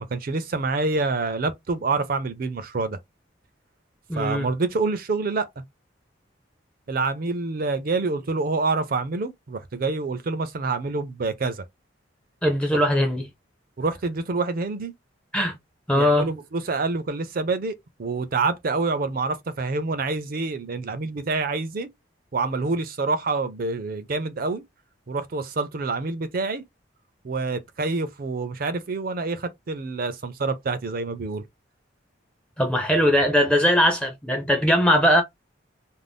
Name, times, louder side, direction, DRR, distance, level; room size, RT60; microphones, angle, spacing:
voice 1, 0.0-3.0 4.2-5.5 6.9-11.6 13.8-14.9 15.9-21.9 22.3-24.6 25.1-26.6 27.2-31.4, right 3 dB, 50° right, 0.5 m, -27 dB
voice 2, 4.1-4.5 12.4-13.3 15.3-15.5 15.9-16.3 32.6-35.2, equal, 5° left, 0.5 m, -20 dB
2.6 x 2.0 x 3.3 m
head